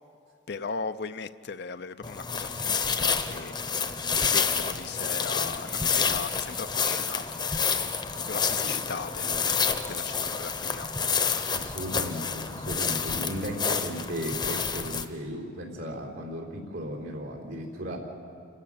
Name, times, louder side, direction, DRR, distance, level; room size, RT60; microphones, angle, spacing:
voice 1, 0.5-3.5 4.3-7.2 8.3-10.9, left 5 dB, 55° left, 0.5 m, -38 dB
sound 1, 2.0-15.0, left 6 dB, 20° left, 0.8 m, -29 dB
voice 2, 11.5-18.0, equal, 75° right, 3.7 m, -35 dB
29.0 x 13.0 x 8.6 m
head